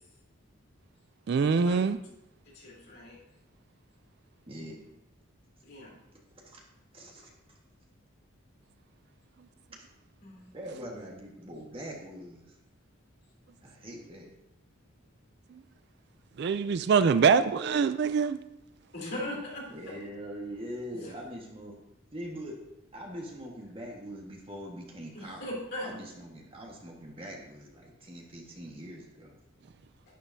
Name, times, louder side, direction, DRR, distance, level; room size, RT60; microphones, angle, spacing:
voice 1, 1.3-2.0 16.4-18.4, right 5 dB, 55° right, 12 dB, 0.3 m, -24 dB
voice 2, 2.5-3.2 5.6-6.0 10.2-11.1 18.9-20.1 21.0-21.1 25.1-25.9, left 1 dB, 50° left, -5 dB, 3.5 m, -40 dB
voice 3, 4.5-4.8 6.3-6.7 6.9-7.3 9.7-9.8 10.5-12.6 13.6-14.3 19.7-21.7 22.1-22.6 22.9-25.4 25.8-29.3, equal, 25° right, 0 dB, 1.5 m, -42 dB
11.5 x 10.0 x 2.7 m, 0.88 s
head